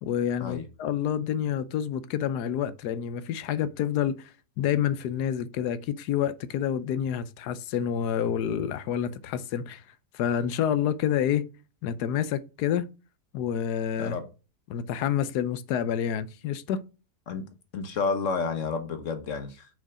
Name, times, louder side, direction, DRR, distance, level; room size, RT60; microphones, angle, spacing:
voice 1, 0.0-4.3 4.6-9.8 10.1-11.5 11.8-12.9 13.3-14.2 14.7-16.8, left 9 dB, 85° left, 1.2 m, -28 dB
voice 2, 17.7-19.7, left 4 dB, 55° left, 1.3 m, -30 dB
5.9 x 5.0 x 4.8 m
omnidirectional pair, 1.7 m